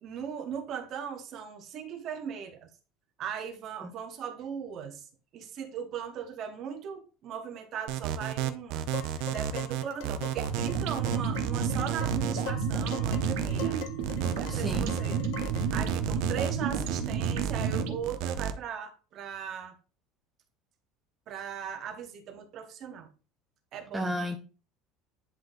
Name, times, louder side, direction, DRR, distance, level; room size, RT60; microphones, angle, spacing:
voice 1, 0.0-2.7 3.2-5.1 5.3-8.9 9.3-13.8 14.4-15.1 15.7-19.7 21.3-23.1 23.7-24.2, right 8 dB, 35° right, 1.0 m, -38 dB
sound 1, 7.9-18.5, right 10 dB, 60° right, 0.6 m, -33 dB
Dishes pots and pans, 8.9-15.8, left 11 dB, 70° left, 0.9 m, -43 dB
sound 2, 10.4-18.0, right 6 dB, 80° right, 1.3 m, -31 dB
voice 2, 14.5-15.0 23.9-24.4, equal, 5° right, 0.5 m, -33 dB
10.0 x 3.8 x 2.6 m
cardioid pair, 175°, 0 cm